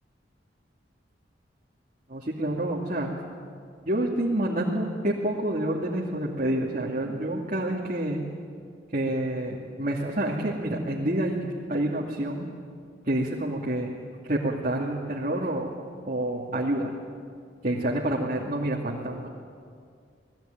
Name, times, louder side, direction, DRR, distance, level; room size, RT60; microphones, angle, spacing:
voice 1, 2.1-3.1 3.9-8.2 8.9-11.4 11.7-12.5 13.0-13.9 14.2-15.7 16.1-16.9 17.6-19.3, right 1 dB, 45° right, -3 dB, 2.5 m, -28 dB
27.5 x 19.0 x 9.3 m, 2.2 s
head